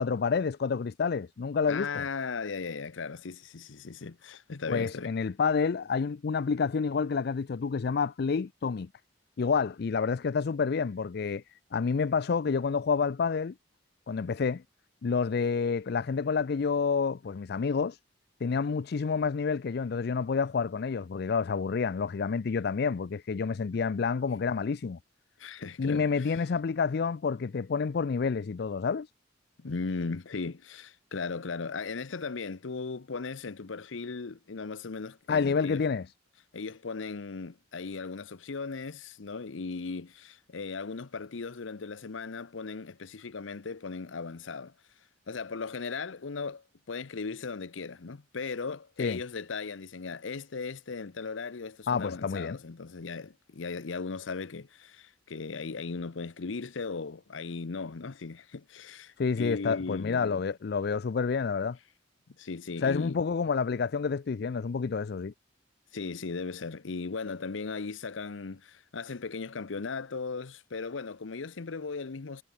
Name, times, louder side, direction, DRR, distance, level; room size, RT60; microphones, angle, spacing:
voice 1, 0.0-2.1 4.7-8.9 9.4-11.4 11.7-13.5 14.1-14.6 15.0-18.0 18.4-25.0 25.8-29.1 35.3-36.1 49.0-49.2 51.9-52.6 59.2-61.8 62.8-65.3, left 5 dB, 55° left, 0.4 m, -29 dB
voice 2, 1.7-5.1 23.7-23.8 25.4-26.4 29.6-35.8 36.5-44.7 45.3-60.4 62.4-63.2 65.9-72.4, left 4 dB, 85° left, 0.8 m, -37 dB
head